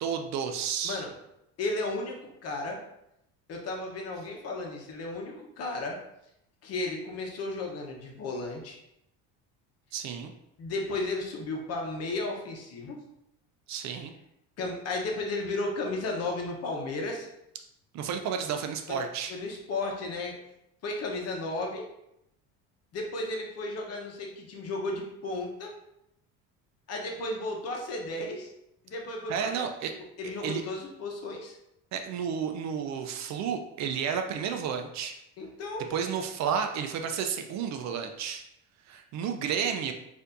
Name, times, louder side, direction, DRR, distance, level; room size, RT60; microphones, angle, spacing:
voice 1, 0.0-1.0 9.9-10.3 13.7-14.1 17.9-19.3 29.3-29.9 30.4-30.6 31.9-35.2 35.9-38.4 38.9-39.9, right 7 dB, 55° right, 5 dB, 0.5 m, -31 dB
voice 2, 1.6-2.8 3.5-5.9 6.6-8.8 10.6-13.0 14.6-17.3 18.9-19.0 19.3-20.3 20.8-21.8 22.9-25.7 26.9-28.5 28.8-29.7 30.2-31.6 35.4-35.8, left 2 dB, 45° left, 1 dB, 0.9 m, -34 dB
4.3 x 2.7 x 2.5 m, 0.81 s
cardioid pair, 125°, 34 cm